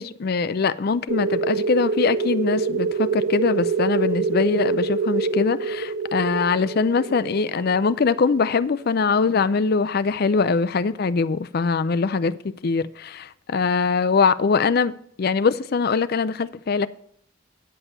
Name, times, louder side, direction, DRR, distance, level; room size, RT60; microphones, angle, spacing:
voice 1, 0.0-12.4 12.6-16.9, left 4 dB, 50° left, 0.4 m, -22 dB
sound 1, 1.1-9.4, right 4 dB, 75° right, 1.6 m, -26 dB
9.7 x 5.4 x 7.1 m
head